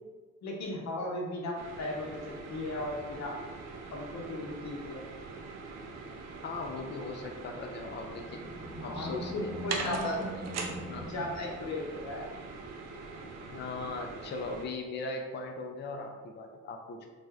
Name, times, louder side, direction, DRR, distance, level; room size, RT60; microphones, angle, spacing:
voice 1, 0.4-3.3 3.9-5.0 8.9-10.1 11.1-12.3, left 1 dB, 65° left, -1 dB, 0.8 m, -36 dB
sound 1, 1.6-14.7, right 4 dB, 60° right, 0.5 m, -42 dB
voice 2, 6.4-8.5 8.8-10.3 10.6-11.1 13.5-17.1, left 3 dB, 35° left, 3 dB, 0.4 m, -39 dB
Animal, 8.0-12.3, right 1 dB, 15° right, 0.8 m, -42 dB
2.5 x 2.1 x 3.3 m, 1.4 s
cardioid pair, 90°, 30 cm